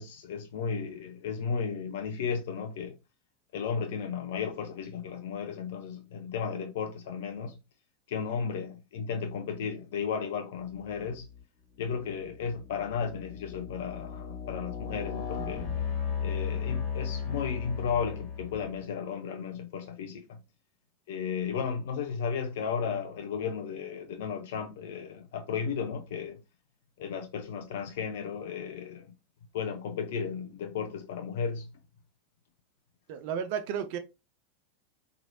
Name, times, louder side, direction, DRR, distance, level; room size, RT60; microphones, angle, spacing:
voice 1, 0.0-2.9 3.5-7.6 8.1-11.3 11.8-15.7 16.2-20.4 21.1-26.4 27.0-29.1 29.5-31.7, left 6 dB, 60° left, 0.4 m, -34 dB
sound 1, 11.2-11.4 12.0-18.9, left 7 dB, 35° left, 1.4 m, -35 dB
voice 2, 33.1-34.0, right 8 dB, 55° right, 0.5 m, -32 dB
3.0 x 2.6 x 2.7 m
figure-of-eight pair, 85°, 0 cm